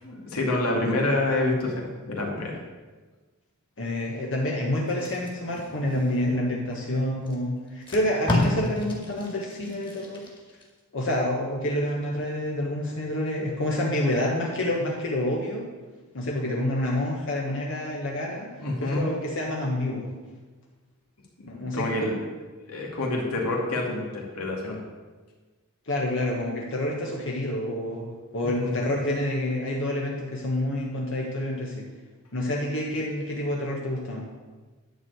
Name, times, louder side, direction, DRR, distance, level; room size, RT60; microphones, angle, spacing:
voice 1, 0.0-2.6 18.6-19.1 21.7-22.1 22.7-24.8 28.4-28.8, left 2 dB, 85° left, -1 dB, 2.6 m, -27 dB
voice 2, 3.8-10.2 10.9-15.7 16.1-18.5 18.8-20.1 21.4-21.9 25.9-28.1 28.3-31.9 32.3-34.2, left 1 dB, 60° left, -2 dB, 1.4 m, -28 dB
Packing tape duct tape, 4.9-6.6 7.3-7.4 7.7-10.7 11.1-11.3, left 2 dB, 20° left, 2.1 m, -31 dB
11.0 x 4.7 x 8.1 m, 1.3 s
head